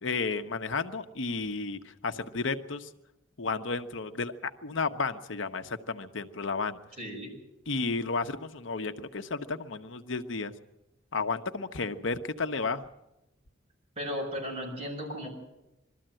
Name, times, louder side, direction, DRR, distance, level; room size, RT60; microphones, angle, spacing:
voice 1, 0.0-2.9 3.4-6.8 7.7-10.5 11.1-12.9, left 4 dB, 70° left, 9 dB, 0.9 m, -32 dB
voice 2, 7.0-7.3 13.9-15.3, equal, 30° right, -1 dB, 6.6 m, -35 dB
21.5 x 13.5 x 9.0 m, 0.92 s
head